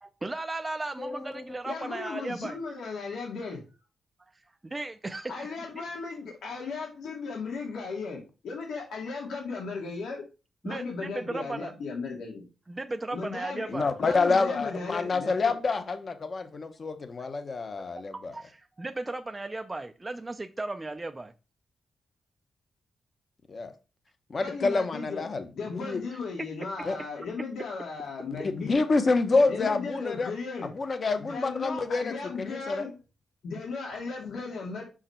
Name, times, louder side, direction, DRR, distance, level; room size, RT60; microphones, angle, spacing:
voice 1, 0.0-2.6 4.6-5.5 10.6-11.7 12.7-13.9 17.8-17.9 18.1-21.3 26.1-26.2, right 2 dB, 15° right, 0.4 m, -36 dB
voice 2, 1.0-1.4 13.7-18.3 23.5-23.7 24.3-26.0 26.8-27.0 28.4-30.3 30.7-32.9, left 3 dB, 35° left, 0.8 m, -28 dB
voice 3, 1.6-3.6 5.3-10.2 10.6-12.4 13.1-13.7 14.0-15.5 24.4-25.3 25.5-28.8 29.5-30.7 31.2-32.9 33.4-34.8, left 4 dB, 90° left, 2.3 m, -36 dB
6.2 x 4.9 x 4.3 m
wide cardioid pair, 165°, 0 cm